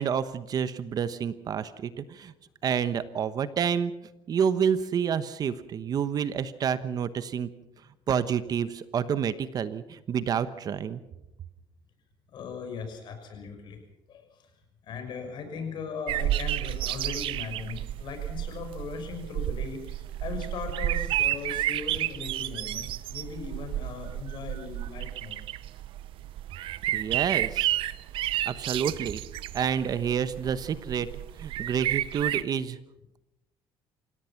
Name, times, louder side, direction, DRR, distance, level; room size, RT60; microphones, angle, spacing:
voice 1, 0.0-2.3 2.6-3.9 4.3-7.5 8.1-11.0 26.9-27.7 28.5-29.2 29.5-31.1 31.4-32.8, right 7 dB, 45° right, 13 dB, 1.1 m, -28 dB
voice 2, 12.3-13.8 14.1-14.5 14.8-25.4, left 5 dB, 55° left, 5 dB, 6.3 m, -39 dB
sound 1, 16.1-32.4, right 13 dB, 70° right, 0.8 m, -31 dB
27.5 x 17.5 x 5.9 m, 0.92 s
cardioid pair, 125°, 9 cm